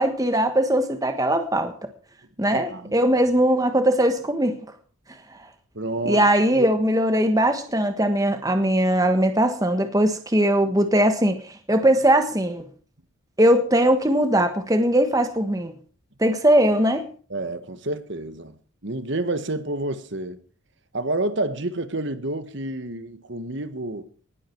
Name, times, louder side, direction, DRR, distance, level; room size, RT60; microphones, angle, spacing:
voice 1, 0.0-1.7 2.4-4.6 5.4-5.5 6.0-12.7 13.4-15.7 16.2-17.1, right 1 dB, 15° right, 1.4 m, -20 dB
voice 2, 2.5-2.9 5.7-6.3 6.5-6.7 17.3-18.5 18.8-20.4 20.9-24.1, right 2 dB, 55° right, 1.5 m, -29 dB
19.5 x 12.5 x 4.6 m
head